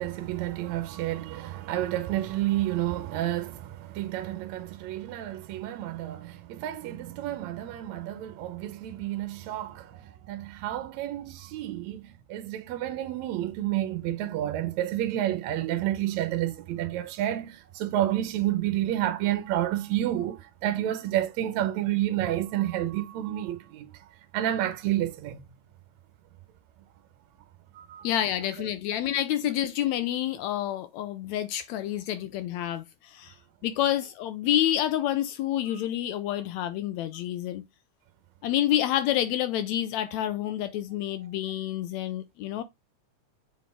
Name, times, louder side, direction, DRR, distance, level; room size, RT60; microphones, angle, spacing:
voice 1, 0.0-23.9 24.3-25.4 27.8-28.1, right 13 dB, 75° right, 2.0 m, -30 dB
voice 2, 28.0-33.4 33.6-37.6 38.4-42.6, left 12 dB, 80° left, 1.8 m, -28 dB
7.6 x 4.1 x 3.5 m
omnidirectional pair, 3.3 m